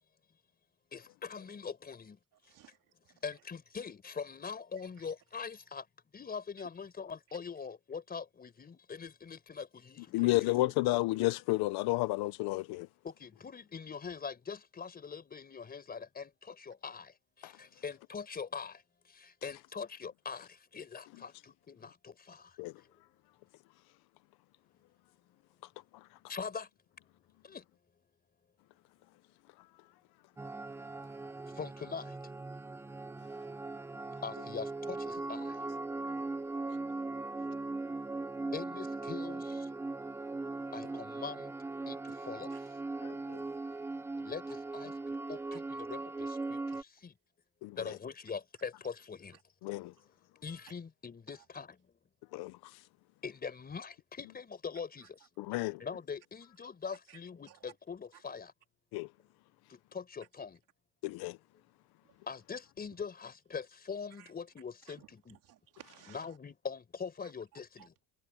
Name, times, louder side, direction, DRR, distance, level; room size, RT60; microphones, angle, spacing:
voice 1, 0.9-2.2 3.2-5.8 6.1-10.6 13.0-17.1 17.4-18.8 19.1-22.5 26.3-26.7 27.4-27.6 31.6-32.1 34.2-35.6 38.5-39.7 40.7-41.5 41.9-42.5 44.2-47.1 47.8-49.4 50.4-51.8 53.2-55.2 55.8-58.5 59.7-60.6 62.3-65.4 66.1-67.9, left 5 dB, 20° left, 4.4 m, -43 dB
voice 2, 2.4-2.8 3.1-3.2 45.5-45.6 57.1-57.2 57.5-57.6 64.2-64.3 65.0-66.3 67.8-67.9, right 13 dB, 50° right, 3.5 m, -57 dB
voice 3, 10.1-12.9 17.4-17.6 22.6-22.8 25.6-26.2 29.6-29.7 36.1-36.2 43.0-43.4 47.6-48.0 49.6-49.9 52.3-52.9 55.4-55.8 58.9-59.1 61.0-61.4, left 20 dB, 60° left, 0.7 m, -32 dB
sound 1, 30.4-46.8, right 3 dB, 5° right, 0.5 m, -39 dB
cardioid pair, 155°, 42 cm